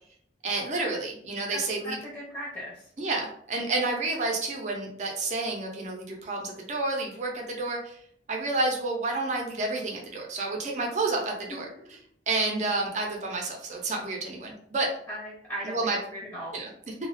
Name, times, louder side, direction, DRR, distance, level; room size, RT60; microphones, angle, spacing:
voice 1, 0.4-2.0 3.0-8.0 8.3-11.7 12.3-14.9 15.6-16.0 16.5-16.9, right 3 dB, 40° right, 1 dB, 0.5 m, -30 dB
voice 2, 1.5-2.8 15.1-15.8 16.1-16.5, equal, 15° left, -8 dB, 0.7 m, -37 dB
2.3 x 2.1 x 2.5 m, 0.66 s
head